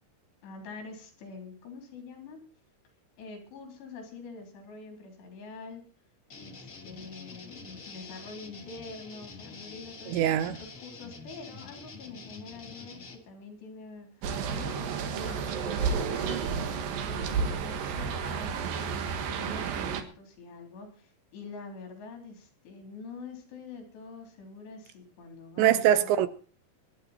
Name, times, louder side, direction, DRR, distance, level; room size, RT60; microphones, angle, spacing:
voice 1, 0.4-2.4 3.2-5.8 6.4-26.1, left 4 dB, 75° left, 5.6 m, -45 dB
sound 1, 6.3-13.1, left 4 dB, 40° left, 1.0 m, -46 dB
voice 2, 10.1-10.6 25.6-26.3, right 11 dB, 85° right, 3.3 m, -23 dB
sound 2, 14.2-20.0, right 6 dB, 65° right, 2.7 m, -31 dB
24.5 x 9.6 x 4.2 m
omnidirectional pair, 5.0 m